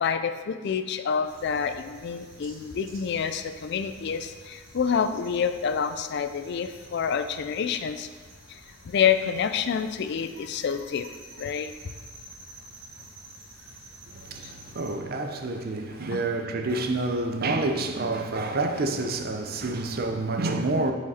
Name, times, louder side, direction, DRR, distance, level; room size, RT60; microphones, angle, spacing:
voice 1, 0.0-8.1 8.9-11.1 11.4-11.7 16.1-16.2, left 7 dB, 60° left, 0.4 m, -27 dB
sound 1, 1.2-14.9, right 2 dB, 80° right, 1.3 m, -49 dB
voice 2, 14.1-20.9, right 2 dB, 50° right, 0.6 m, -28 dB
6.6 x 5.0 x 4.2 m
head